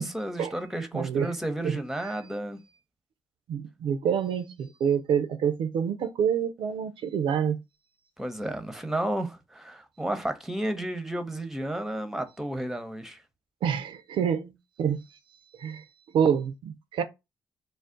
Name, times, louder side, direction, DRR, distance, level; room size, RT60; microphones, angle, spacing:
voice 1, 0.0-2.6 8.2-13.2, right 1 dB, 5° right, 0.6 m, -32 dB
voice 2, 0.9-1.3 1.6-2.1 3.5-7.6 13.6-15.2 15.6-15.9 16.1-17.0, right 7 dB, 65° right, 0.4 m, -27 dB
2.4 x 2.0 x 3.7 m
hypercardioid pair, 45°, 9 cm